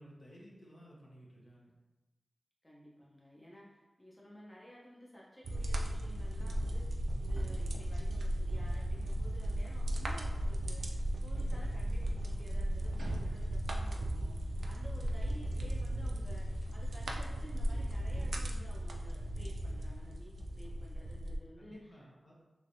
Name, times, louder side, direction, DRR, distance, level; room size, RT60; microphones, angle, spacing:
voice 1, 0.0-1.7 21.6-22.3, equal, 50° left, -4 dB, 0.9 m, -55 dB
voice 2, 2.6-22.1, equal, 15° left, -5 dB, 0.6 m, -54 dB
sound 1, 5.4-21.4, right 1 dB, 80° right, 0.3 m, -36 dB
3.1 x 3.1 x 2.6 m, 1.1 s
wide cardioid pair, 65°, 0 cm